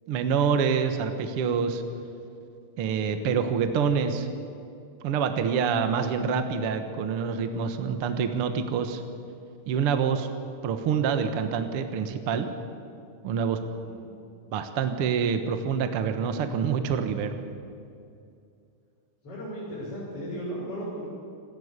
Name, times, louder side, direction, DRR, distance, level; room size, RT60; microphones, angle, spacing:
voice 1, 0.1-1.8 2.8-4.3 5.0-9.0 9.7-10.3 10.6-12.5 13.2-13.6 14.5-17.3, right 6 dB, 75° right, 7 dB, 1.2 m, -26 dB
voice 2, 19.2-21.1, equal, 35° left, -7 dB, 7.1 m, -35 dB
27.0 x 14.0 x 8.2 m, 2.5 s
omnidirectional pair, 4.7 m